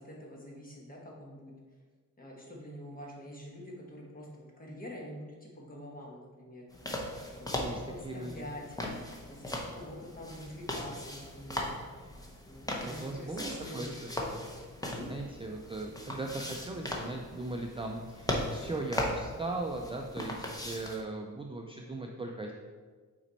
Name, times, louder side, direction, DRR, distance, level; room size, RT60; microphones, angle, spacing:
voice 1, 0.0-1.5 2.2-6.6 7.3-8.8 9.3-11.7 12.4-13.9 14.9-15.1, equal, 25° left, -2 dB, 1.3 m, -46 dB
sound 1, 6.7-21.0, left 1 dB, 10° left, 0.7 m, -39 dB
voice 2, 7.2-8.5 12.8-14.5 15.1-22.5, right 2 dB, 15° right, 1 dB, 0.3 m, -39 dB
6.0 x 4.2 x 4.1 m, 1.5 s
wide cardioid pair, 145°, 33 cm